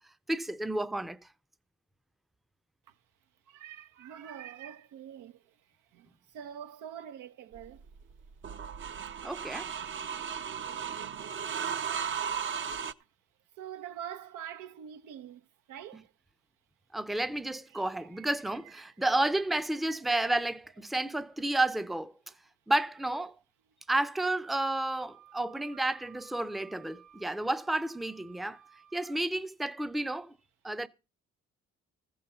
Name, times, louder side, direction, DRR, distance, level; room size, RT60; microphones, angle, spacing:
voice 1, 0.3-1.2 9.2-9.7 16.9-22.1 22.7-23.3 23.9-28.6 28.9-30.3 30.6-30.9, right 1 dB, ahead, 0.6 m, -31 dB
voice 2, 3.5-7.8 13.6-16.1 17.7-18.3 18.7-19.0 29.0-29.1, right 9 dB, 85° right, 0.9 m, -45 dB
sound 1, 7.5-12.9, right 7 dB, 40° right, 0.7 m, -36 dB
Wind instrument woodwind instrument, 24.9-29.1, right 10 dB, 70° right, 2.5 m, -57 dB
14.5 x 5.5 x 6.8 m
cardioid pair, 90°, 30 cm